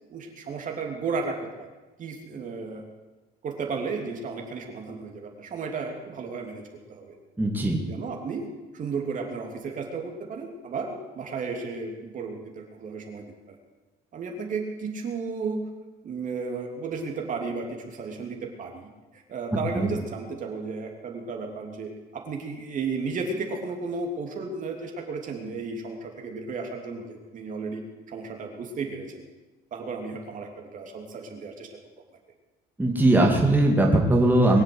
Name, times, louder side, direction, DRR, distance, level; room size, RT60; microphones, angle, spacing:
voice 1, 0.1-1.7 2.0-2.8 3.4-6.6 6.9-7.1 7.8-8.5 8.7-13.2 14.1-15.7 16.0-27.8 28.1-29.3 29.7-31.7, right 4 dB, 50° right, 2 dB, 3.2 m, -33 dB
voice 2, 7.4-7.8 19.7-19.9 32.8-34.6, right 1 dB, 10° right, -1 dB, 2.5 m, -20 dB
22.5 x 7.7 x 8.0 m, 1.1 s
cardioid pair, 110°, 17 cm